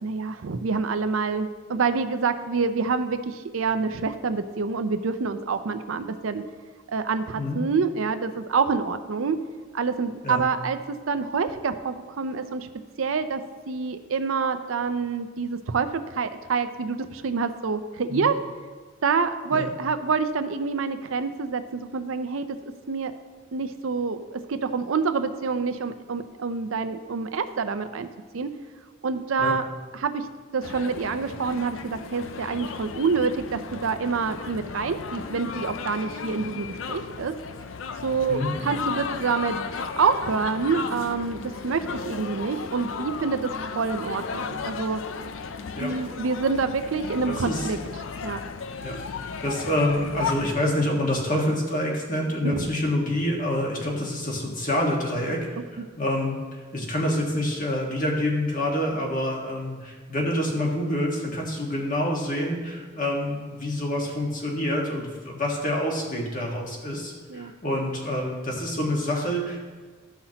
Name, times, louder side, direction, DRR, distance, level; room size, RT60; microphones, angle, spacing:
voice 1, 0.0-6.4 6.9-9.4 9.7-12.7 13.0-13.4 13.7-18.4 19.0-22.5 22.9-23.1 23.5-28.1 28.3-28.5 29.0-29.6 29.9-30.3 30.5-37.4 38.0-39.6 39.9-43.5 43.8-45.0 45.8-47.8 48.2-48.4 52.4-52.7 55.8-55.9 67.3-67.5, right 5 dB, 80° right, 10 dB, 0.5 m, -27 dB
sound 1, 30.6-50.5, left 5 dB, 75° left, 0.5 m, -35 dB
voice 2, 47.2-47.7 48.8-49.0 49.4-55.5 56.0-56.4 56.7-69.6, left 1 dB, 40° left, -1 dB, 1.6 m, -27 dB
13.5 x 5.7 x 2.9 m, 1.4 s
head